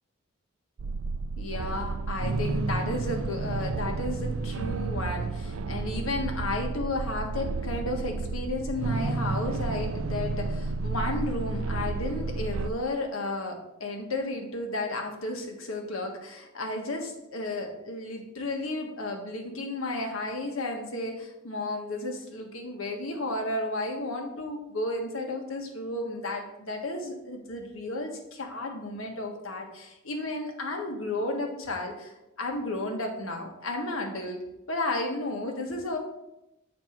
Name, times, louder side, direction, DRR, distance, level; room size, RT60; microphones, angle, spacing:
sound 1, 0.8-12.7, right 3 dB, 85° right, 0.4 m, -31 dB
voice 1, 1.4-34.4 34.7-36.0, left 2 dB, 85° left, 2 dB, 1.5 m, -33 dB
8.4 x 4.4 x 5.9 m, 0.91 s
head